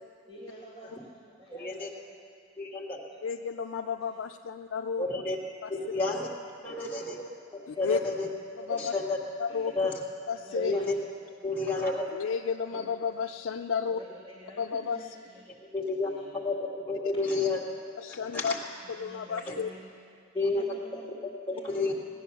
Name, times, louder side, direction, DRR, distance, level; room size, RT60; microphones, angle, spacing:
voice 1, 0.3-2.0 3.1-3.2 3.8-4.2 5.8-6.1 6.6-6.9 7.7-8.0 8.7-8.9 9.5-9.7 10.3-11.1 12.7-13.2 13.9-15.5 16.0-16.3 17.1-17.6 19.0-19.9 20.3-21.9, equal, 30° right, -8 dB, 2.4 m, -49 dB
voice 2, 1.6-1.9 2.6-3.0 5.0-5.4 5.7-6.3 6.6-7.3 7.8-8.3 8.6-9.3 9.8-9.9 10.5-10.9 11.4-12.0 15.7-16.1 16.4-17.6 18.1-18.6 19.5-19.6 20.3-20.8 21.5-21.9, left 3 dB, 10° left, -4 dB, 2.0 m, -30 dB
voice 3, 3.2-5.0 5.6-5.7 7.7-8.0 8.6-8.9 9.4-9.7 10.3-10.7 12.1-14.0 14.6-15.0 18.0-18.6 18.9-19.7, left 6 dB, 75° left, 6 dB, 0.4 m, -32 dB
17.5 x 10.5 x 6.9 m, 2.4 s
head